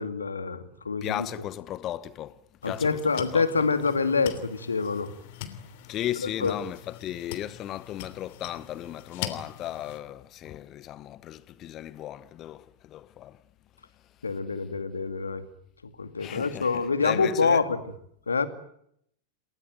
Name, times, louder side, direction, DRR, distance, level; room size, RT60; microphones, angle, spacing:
voice 1, 0.0-1.3 2.6-5.1 6.4-6.5 14.2-15.4 16.0-17.8 18.3-18.5, left 4 dB, 75° left, 2.3 m, -26 dB
voice 2, 1.0-3.5 5.9-13.4 16.2-17.6, left 12 dB, 35° left, 1.0 m, -36 dB
sound 1, 2.6-10.0, left 10 dB, 50° left, 3.1 m, -42 dB
29.0 x 19.0 x 9.2 m
figure-of-eight pair, 90°, 0 cm